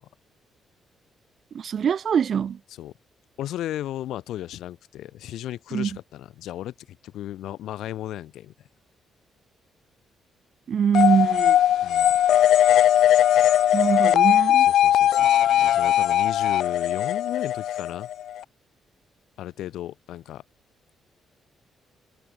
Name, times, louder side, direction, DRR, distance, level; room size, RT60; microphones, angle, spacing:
voice 1, 1.5-2.6 5.7-5.9 10.7-11.6 13.7-14.7, right 7 dB, 40° right, 1.9 m, -23 dB
voice 2, 3.4-6.7 7.0-8.5 11.8-12.1 14.7-18.1 19.4-20.4, left 13 dB, 85° left, 4.5 m, -35 dB
sound 1, 10.9-18.4, left 11 dB, 65° left, 0.4 m, -19 dB
cardioid pair, 180°, 0 cm